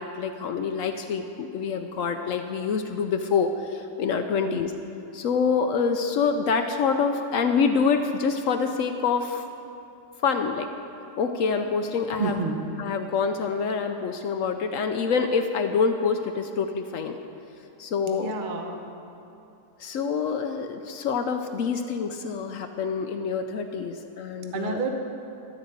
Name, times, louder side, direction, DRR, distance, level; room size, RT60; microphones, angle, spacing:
voice 1, 0.0-4.7 5.1-9.4 10.2-10.7 11.2-12.4 12.8-17.2 17.8-18.3 19.8-24.8, left 5 dB, 65° left, 6 dB, 0.8 m, -26 dB
voice 2, 12.2-12.6 18.1-18.9 24.5-24.9, right 4 dB, 40° right, 3 dB, 0.8 m, -29 dB
13.0 x 5.1 x 8.1 m, 2.8 s
omnidirectional pair, 1.8 m